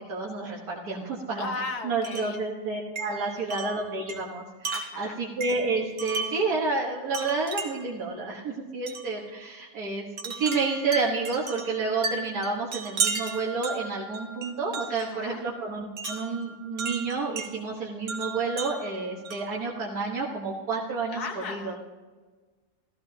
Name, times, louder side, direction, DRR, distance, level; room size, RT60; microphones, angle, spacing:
voice 1, 0.0-1.5 1.8-21.8, right 3 dB, 80° right, -5 dB, 1.9 m, -30 dB
voice 2, 1.4-2.4 3.1-3.5 4.7-5.2 14.9-15.4 21.1-21.8, left 4 dB, 80° left, 5 dB, 1.7 m, -37 dB
Wind chime, 2.0-2.4 3.0-6.5 7.1-8.0 8.9-9.1 10.2-15.1 16.0-17.5 18.1-19.6, right 4 dB, 55° right, 1.5 m, -35 dB
14.5 x 14.5 x 2.8 m, 1.4 s
omnidirectional pair, 1.6 m